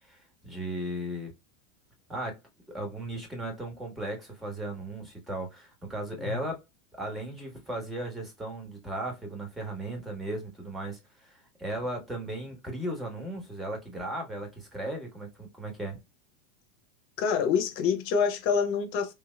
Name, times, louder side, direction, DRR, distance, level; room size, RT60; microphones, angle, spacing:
voice 1, 0.1-1.3 2.1-2.4 2.7-6.6 6.9-16.0, right 1 dB, 10° right, 1.4 m, -36 dB
voice 2, 17.2-19.1, left 6 dB, 50° left, 0.7 m, -26 dB
3.4 x 2.8 x 2.2 m
figure-of-eight pair, 85°, 0 cm